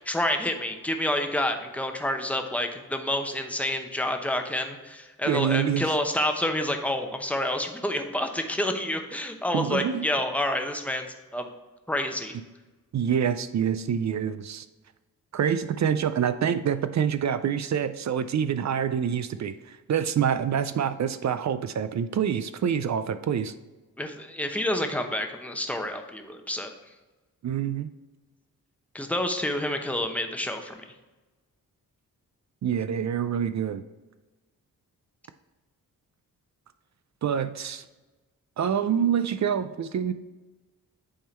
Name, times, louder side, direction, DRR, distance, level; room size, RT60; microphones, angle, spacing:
voice 1, 0.0-11.5 11.9-12.4 24.0-26.7 28.9-30.8, left 1 dB, 5° left, 5 dB, 0.8 m, -28 dB
voice 2, 5.3-5.9 9.5-10.0 12.9-14.7 15.3-23.5 27.4-27.9 32.6-33.8 37.2-37.8 38.6-40.1, right 8 dB, 50° right, 11 dB, 0.5 m, -26 dB
8.7 x 3.7 x 4.4 m, 1.2 s
cardioid pair, 75°, 35 cm